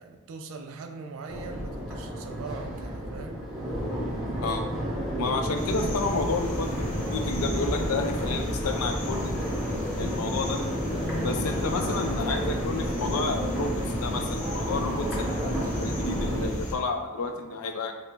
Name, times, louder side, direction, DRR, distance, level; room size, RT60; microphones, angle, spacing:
voice 1, 0.0-3.5 11.7-12.1, right 4 dB, 65° right, 5 dB, 0.4 m, -41 dB
Crowd, 1.3-16.4, equal, 5° right, 0.6 m, -31 dB
voice 2, 5.2-9.3 10.0-10.6 11.2-17.9, left 3 dB, 85° left, 4 dB, 0.4 m, -31 dB
sound 1, 5.5-16.8, left 1 dB, 35° left, 0.6 m, -36 dB
3.8 x 2.0 x 3.3 m, 1.2 s
head